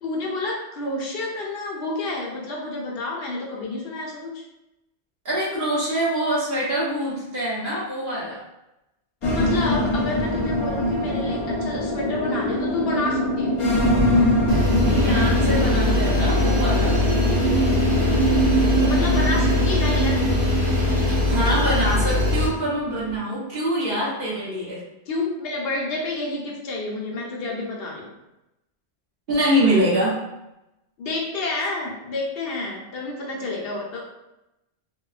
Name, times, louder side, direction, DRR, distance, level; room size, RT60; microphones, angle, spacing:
voice 1, 0.0-4.4 9.2-13.6 18.8-20.5 25.1-28.1 31.0-34.0, left 2 dB, 65° left, -2 dB, 0.8 m, -29 dB
voice 2, 5.2-8.4 14.9-16.9 21.2-24.8 29.3-30.2, right 1 dB, 55° right, -8 dB, 1.1 m, -24 dB
sound 1, 9.2-23.2, equal, 50° left, 0.4 m, -23 dB
sound 2, 14.5-22.5, left 2 dB, 75° right, 1.4 m, -22 dB
sound 3, 14.8-21.7, equal, 10° left, 0.7 m, -39 dB
2.9 x 2.1 x 2.3 m, 0.92 s
omnidirectional pair, 1.1 m